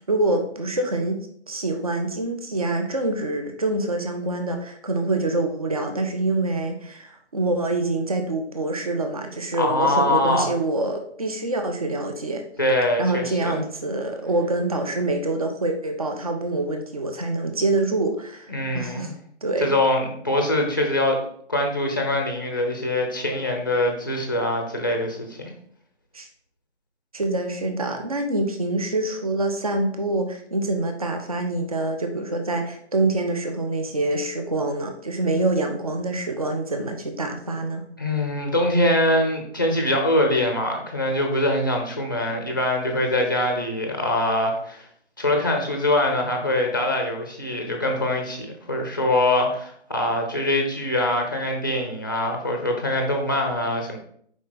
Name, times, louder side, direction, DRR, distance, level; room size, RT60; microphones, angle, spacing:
voice 1, 0.1-1.2 1.5-12.4 13.0-19.1 19.4-19.7 26.1-26.3 27.1-37.8, right 2 dB, 35° right, 5 dB, 0.7 m, -25 dB
voice 2, 9.6-10.5 12.6-13.6 18.5-19.1 19.6-21.2 21.5-25.4 38.0-44.9 45.2-54.0, left 1 dB, 20° left, 3 dB, 0.6 m, -23 dB
6.1 x 4.9 x 4.0 m, 0.63 s
figure-of-eight pair, 155°, 34 cm